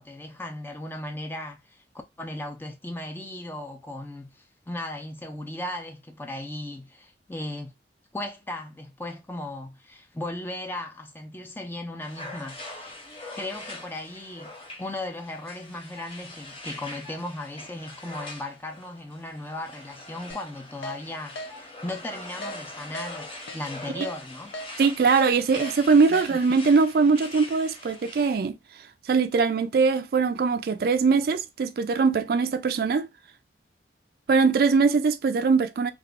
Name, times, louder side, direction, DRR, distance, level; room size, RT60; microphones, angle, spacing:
voice 1, 0.0-1.8 2.2-7.7 8.1-12.9 13.4-14.5 14.8-24.5 26.1-26.4, left 1 dB, 10° left, 0.4 m, -37 dB
sound 1, 12.0-28.4, left 2 dB, 30° left, 0.8 m, -42 dB
Keyboard (musical), 20.3-20.4 20.8-21.0 21.4-21.5 21.9-22.0 22.4-22.6 22.9-23.1 23.5-23.6 24.0-24.1 24.5-24.7 25.1-25.2 25.6-25.7 26.1-26.3, equal, 80° left, 0.5 m, -36 dB
voice 2, 24.8-28.6 29.1-33.1 34.3-35.9, right 4 dB, 55° right, 0.3 m, -21 dB
2.3 x 2.3 x 3.5 m
head